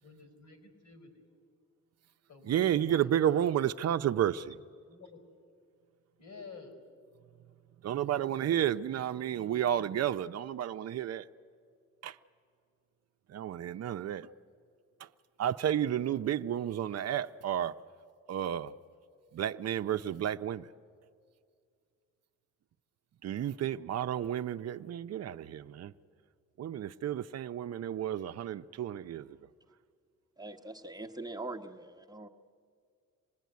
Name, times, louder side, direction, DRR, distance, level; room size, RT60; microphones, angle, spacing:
voice 1, 0.0-1.2 2.3-3.7 4.9-5.2 6.2-6.8, left 4 dB, 75° left, 5.1 m, -51 dB
voice 2, 2.4-4.6 7.8-11.3 12.0-12.2 13.3-14.3 15.0-15.1 15.4-17.7 18.3-18.7 19.3-20.7 23.2-25.9 26.6-29.4, right 10 dB, 55° right, 0.7 m, -31 dB
voice 3, 30.4-32.3, right 2 dB, 15° right, 1.1 m, -42 dB
26.0 x 19.5 x 9.4 m
cardioid pair, 90°, 30 cm